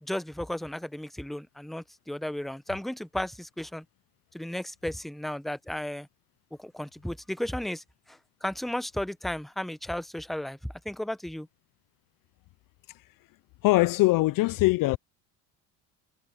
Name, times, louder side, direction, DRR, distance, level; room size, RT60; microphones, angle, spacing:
voice 1, 0.0-3.8 4.3-6.1 6.6-10.6 10.8-11.5, left 1 dB, ahead, 0.8 m, -34 dB
voice 2, 13.6-15.0, left 20 dB, 60° left, 0.5 m, -22 dB
supercardioid pair, 95°, 39 cm